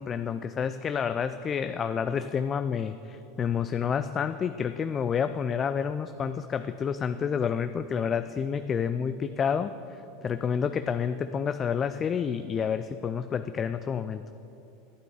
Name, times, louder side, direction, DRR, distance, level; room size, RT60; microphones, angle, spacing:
voice 1, 0.0-9.7 10.2-14.2, left 7 dB, 30° left, 10 dB, 0.3 m, -29 dB
11.5 x 9.1 x 4.8 m, 2.9 s
hypercardioid pair, 85°, 0 cm